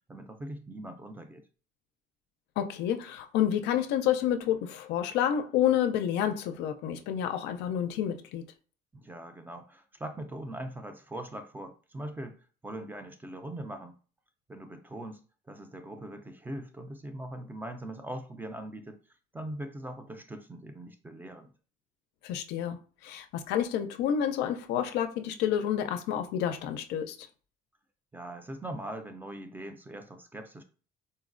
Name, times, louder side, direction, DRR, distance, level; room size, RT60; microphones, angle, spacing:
voice 1, 0.1-1.4 8.9-14.0 14.5-15.2 15.5-19.0 19.3-21.5 28.1-30.6, right 1 dB, 10° right, 7 dB, 0.4 m, -41 dB
voice 2, 2.6-8.4 22.2-22.8 23.0-27.2, left 10 dB, 85° left, 7 dB, 0.4 m, -29 dB
3.9 x 2.0 x 2.5 m, 0.38 s
cardioid pair, 110°, 17 cm